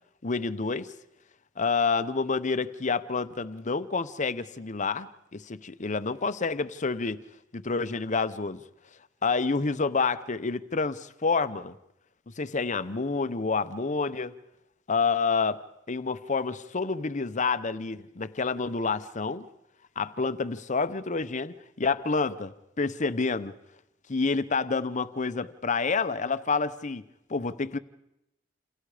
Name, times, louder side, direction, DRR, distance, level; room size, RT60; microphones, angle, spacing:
voice 1, 0.2-0.9 1.6-7.2 7.5-8.6 9.2-11.8 12.3-14.3 14.9-15.6 15.9-19.5 20.0-23.5 24.1-27.0 27.3-27.8, left 4 dB, 40° left, 0.8 m, -28 dB
28.5 x 27.5 x 5.0 m
head